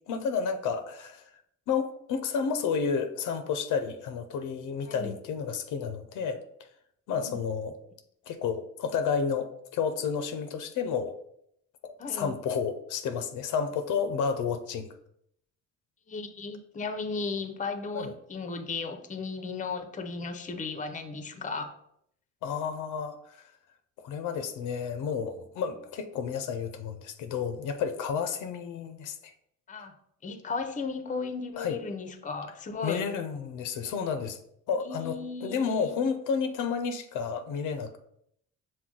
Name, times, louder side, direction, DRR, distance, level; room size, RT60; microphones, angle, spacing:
voice 1, 0.1-1.2 1.7-6.4 7.1-7.7 8.3-11.2 11.8-14.9 17.9-18.1 22.4-23.2 24.0-29.3 31.6-31.8 32.8-34.4 34.7-37.9, left 6 dB, 85° left, 8 dB, 0.5 m, -31 dB
voice 2, 12.0-12.3 16.1-21.7 29.7-30.0 30.2-33.0 34.8-36.0, left 4 dB, 25° left, 8 dB, 0.5 m, -35 dB
5.9 x 2.2 x 3.7 m, 0.72 s
cardioid pair, 90°, 30 cm